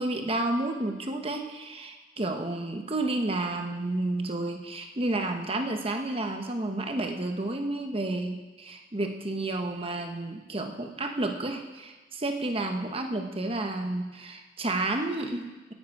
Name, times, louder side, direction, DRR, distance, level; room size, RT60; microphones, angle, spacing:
voice 1, 0.0-15.7, right 2 dB, 30° right, 4 dB, 1.2 m, -31 dB
16.5 x 11.0 x 4.9 m, 1.2 s
head